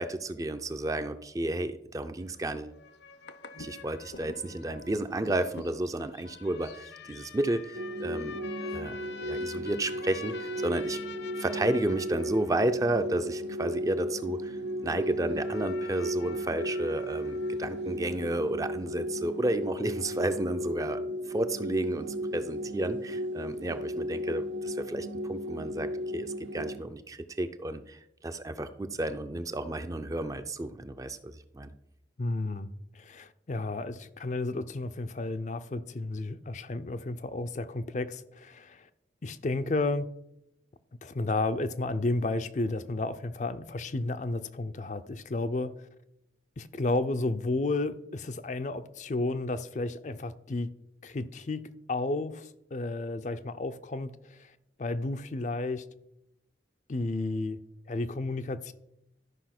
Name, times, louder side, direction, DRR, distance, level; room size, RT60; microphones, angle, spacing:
voice 1, 0.0-2.7 3.6-11.0 11.4-14.5 14.8-21.0 21.3-28.0 28.2-31.7, right 1 dB, 20° right, 0.4 m, -32 dB
sound 1, 2.2-18.3, left 5 dB, 75° left, 0.8 m, -47 dB
sound 2, 7.7-26.8, equal, 85° right, 0.7 m, -35 dB
voice 2, 32.2-32.7 32.9-38.9 39.2-40.0 41.0-45.7 46.6-50.7 51.0-51.6 51.9-54.5 54.8-55.8 56.9-57.6 57.9-58.7, left 2 dB, 40° left, 0.5 m, -32 dB
12.5 x 5.0 x 5.9 m
head